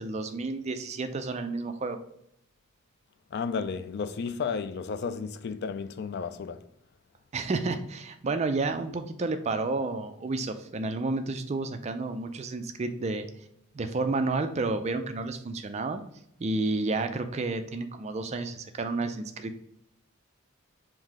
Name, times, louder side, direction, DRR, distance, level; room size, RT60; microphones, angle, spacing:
voice 1, 0.0-2.0 7.3-13.3 13.7-16.0 16.4-19.5, right 3 dB, 30° right, 0.3 m, -31 dB
voice 2, 3.3-6.6, left 5 dB, 50° left, 0.3 m, -33 dB
3.8 x 2.6 x 4.7 m
head